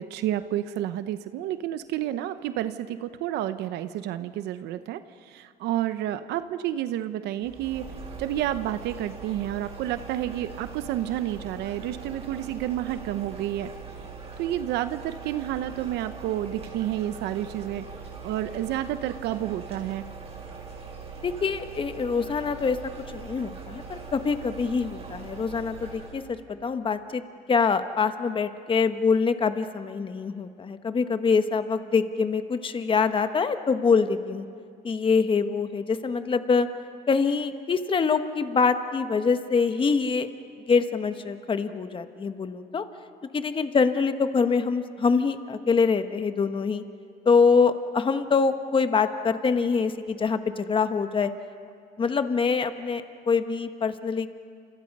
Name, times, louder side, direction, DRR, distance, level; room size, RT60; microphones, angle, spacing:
voice 1, 0.0-7.9 8.2-13.7 14.4-17.8 18.2-20.0, right 12 dB, 85° right, 11 dB, 0.9 m, -30 dB
sound 1, 7.4-26.3, right 5 dB, 40° right, 5.3 m, -41 dB
voice 2, 21.2-22.8 23.1-27.2 27.5-34.4 34.8-36.7 37.1-40.3 40.7-42.8 43.3-46.8 47.2-51.3 52.0-54.3, left 5 dB, 30° left, 9 dB, 1.3 m, -24 dB
29.5 x 27.5 x 5.5 m, 2.3 s
cardioid pair, 110°, 17 cm